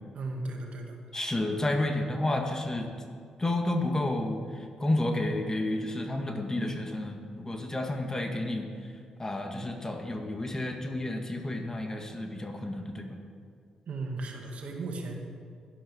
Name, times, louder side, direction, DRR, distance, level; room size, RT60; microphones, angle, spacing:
voice 1, 0.1-1.0 13.9-15.1, right 2 dB, 60° right, 2 dB, 2.0 m, -36 dB
voice 2, 1.1-2.9 3.4-8.7 9.2-13.2, left 1 dB, 25° left, 4 dB, 1.9 m, -31 dB
12.0 x 11.5 x 5.5 m, 2.2 s
hypercardioid pair, 50°, 2 cm